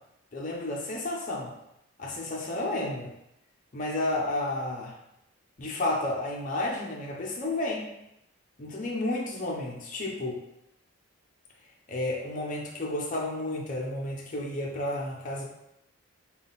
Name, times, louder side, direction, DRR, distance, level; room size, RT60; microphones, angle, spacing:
voice 1, 0.3-1.5 2.0-3.1 3.7-4.9 5.6-7.9 8.6-10.4 11.9-15.4, left 2 dB, 40° left, -2 dB, 0.6 m, -31 dB
3.6 x 2.3 x 3.9 m, 0.83 s
head